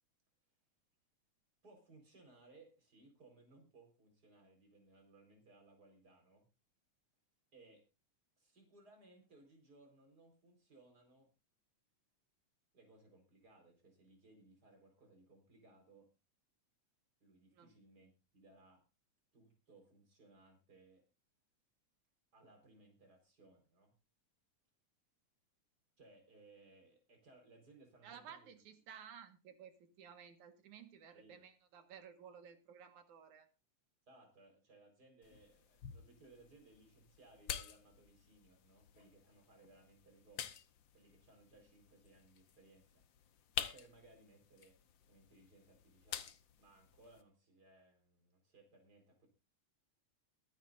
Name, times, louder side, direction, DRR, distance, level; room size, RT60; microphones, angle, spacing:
voice 1, 1.6-6.5 7.5-7.8 8.4-11.3 12.7-16.1 17.2-18.8 19.3-21.0 22.3-23.9 26.0-28.6 31.1-31.4 34.1-40.6 40.9-43.0 43.7-44.8 45.1-49.3, right 2 dB, 30° right, 4 dB, 5.0 m, -64 dB
voice 2, 28.0-33.5, right 8 dB, 80° right, 8 dB, 3.0 m, -55 dB
sound 1, 35.2-47.2, left 9 dB, 70° left, 1.1 m, -49 dB
22.5 x 10.5 x 2.6 m, 0.28 s
omnidirectional pair, 3.4 m